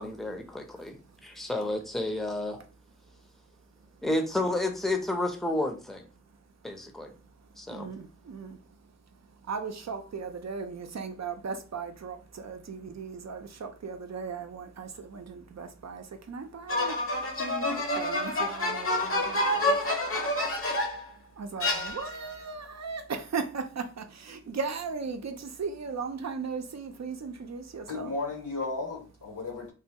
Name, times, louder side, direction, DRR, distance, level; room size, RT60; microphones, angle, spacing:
voice 1, 0.0-2.6 4.0-6.1 6.6-7.1 7.6-7.9, left 2 dB, ahead, 0.6 m, -31 dB
voice 2, 0.7-1.5 3.0-3.3 3.6-4.0 6.2-6.4 6.7-6.8 7.1-28.1, right 5 dB, 60° right, 0.5 m, -38 dB
sound 1, 16.7-21.1 21.6-22.4, left 1 dB, 45° left, 0.8 m, -28 dB
voice 3, 27.9-29.7, left 3 dB, 80° left, 1.3 m, -34 dB
3.1 x 2.2 x 2.8 m
wide cardioid pair, 55°, 31 cm